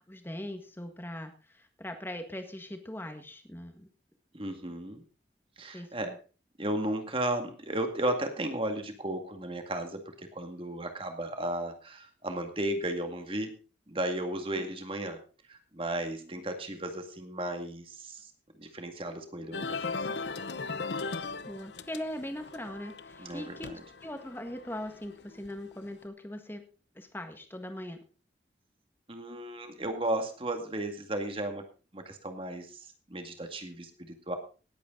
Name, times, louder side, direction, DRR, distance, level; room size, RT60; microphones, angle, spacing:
voice 1, 0.0-3.9 5.7-6.2 21.5-23.7 24.0-26.6 26.9-28.0, left 1 dB, 10° left, 6 dB, 1.7 m, -40 dB
voice 2, 4.3-5.0 5.6-6.1 6.6-13.6 13.9-15.2 15.5-18.3 18.6-19.9 23.2-23.8 29.1-31.7 31.9-34.4, right 1 dB, 30° right, 5 dB, 2.1 m, -34 dB
sound 1, 19.5-25.9, left 4 dB, 80° left, 0.8 m, -38 dB
18.5 x 8.5 x 4.0 m, 0.36 s
head